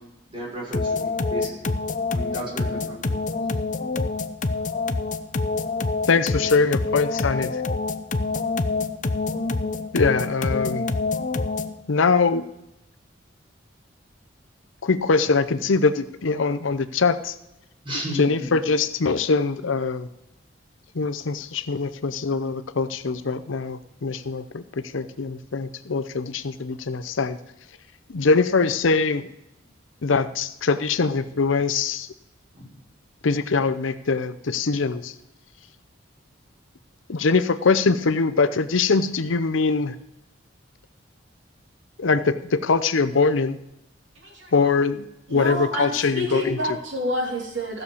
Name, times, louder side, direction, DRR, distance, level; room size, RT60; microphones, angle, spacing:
voice 1, 0.3-1.7 2.1-3.1 17.8-18.6 32.5-32.7, right 1 dB, 25° right, -4 dB, 5.7 m, -33 dB
sound 1, 0.7-11.8, left 3 dB, 40° left, 0.6 m, -26 dB
voice 2, 6.1-7.5 9.9-10.9 11.9-12.4 14.8-17.3 18.1-20.1 20.9-27.4 28.1-29.2 30.0-32.1 33.2-35.1 37.1-39.9 42.0-43.6 44.5-46.8, left 4 dB, 80° left, 11 dB, 0.7 m, -22 dB
voice 3, 44.2-44.5 45.3-47.8, left 1 dB, 70° right, -1 dB, 3.0 m, -28 dB
15.5 x 6.6 x 7.0 m, 0.89 s
head